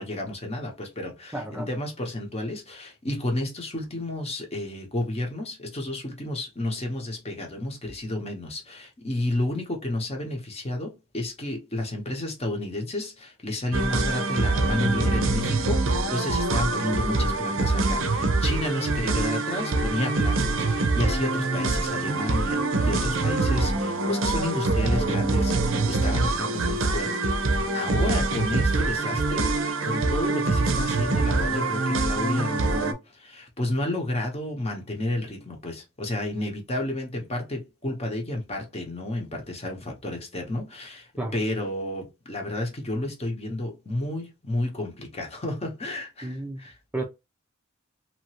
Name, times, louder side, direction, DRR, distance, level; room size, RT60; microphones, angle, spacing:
voice 1, 0.0-46.8, left 1 dB, 30° left, 0.9 m, -31 dB
voice 2, 1.3-1.7 41.2-41.3 46.2-46.6 46.9-47.0, right 2 dB, 5° right, 0.4 m, -31 dB
sound 1, 13.7-32.9, right 3 dB, 70° right, 0.6 m, -24 dB
2.8 x 2.5 x 2.9 m
head